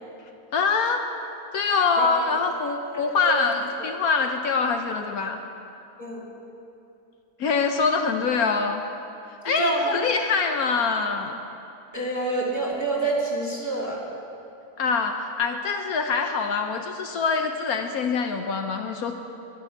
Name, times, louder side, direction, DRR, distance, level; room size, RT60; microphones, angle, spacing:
voice 1, 0.5-1.0 1.5-5.4 7.4-8.8 9.4-11.4 14.8-19.1, left 5 dB, 70° left, 4 dB, 1.2 m, -24 dB
voice 2, 11.9-14.0, right 1 dB, 10° right, -5 dB, 2.4 m, -27 dB
11.5 x 10.5 x 9.0 m, 2.7 s
omnidirectional pair, 1.7 m